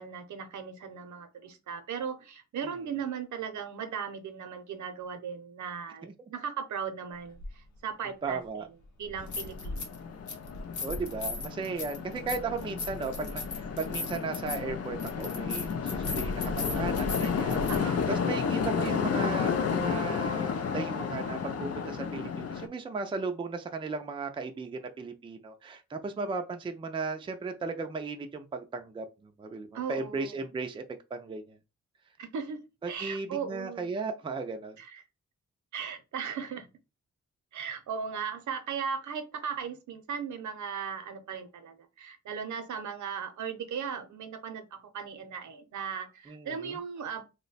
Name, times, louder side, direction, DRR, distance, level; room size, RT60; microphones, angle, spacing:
voice 1, 0.0-8.7 9.0-9.9 17.7-18.1 29.7-30.4 32.2-32.6 32.9-33.9 34.8-35.0 35.7-36.7 37.5-47.2, right 7 dB, 80° right, 0.7 m, -37 dB
sound 1, 7.4-7.5 9.0-10.0 10.3-17.8, left 2 dB, 80° left, 0.9 m, -37 dB
voice 2, 8.2-8.7 10.8-30.8 31.1-31.6 32.8-34.8 46.3-46.8, right 4 dB, 20° right, 0.3 m, -36 dB
sound 2, 9.2-22.7, left 6 dB, 55° left, 0.4 m, -32 dB
3.0 x 2.2 x 3.9 m
wide cardioid pair, 160°, 29 cm